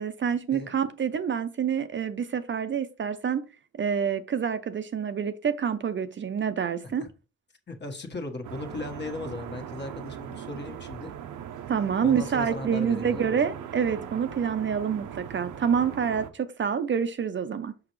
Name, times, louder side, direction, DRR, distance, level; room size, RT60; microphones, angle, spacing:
voice 1, 0.0-3.4 3.8-7.1 11.7-17.7, right 7 dB, 40° right, 0.7 m, -27 dB
voice 2, 7.7-11.1 12.0-13.4, left 2 dB, 35° left, 1.5 m, -37 dB
sound 1, 8.4-16.3, right 9 dB, 80° right, 0.8 m, -40 dB
6.0 x 5.6 x 3.2 m
cardioid pair, 90°, 30 cm